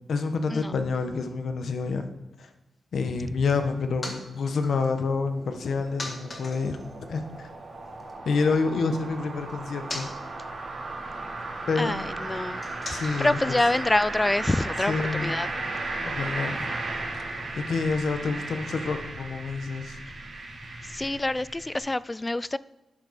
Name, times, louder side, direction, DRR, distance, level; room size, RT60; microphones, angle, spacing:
voice 1, 0.1-2.1 2.4-2.5 2.9-6.8 7.1-7.5 8.2-10.1 11.7-11.9 12.9-13.6 14.9-15.3 16.0-16.7 17.5-20.0, left 4 dB, 75° left, 1.1 m, -28 dB
sound 1, 3.5-8.1 8.4-14.6, left 2 dB, 30° left, 1.8 m, -44 dB
sound 2, 4.5-21.8, right 2 dB, 55° right, 3.6 m, -35 dB
voice 2, 11.8-12.6 12.9-15.5 20.8-22.6, left 2 dB, 15° left, 0.3 m, -26 dB
11.5 x 8.9 x 4.2 m
wide cardioid pair, 130°, 0 cm